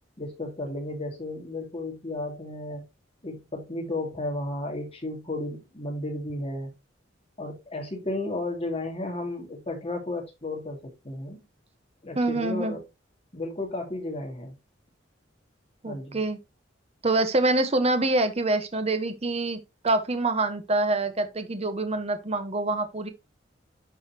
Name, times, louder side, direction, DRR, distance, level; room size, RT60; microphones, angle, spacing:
voice 1, 0.2-2.8 3.2-6.7 7.4-11.4 12.0-12.8 13.3-14.5 15.8-16.2, left 2 dB, 35° left, 2.4 m, -33 dB
voice 2, 12.1-12.8 15.8-16.4 17.0-19.6 19.8-23.1, right 2 dB, 35° right, 1.1 m, -25 dB
11.5 x 4.1 x 2.9 m
head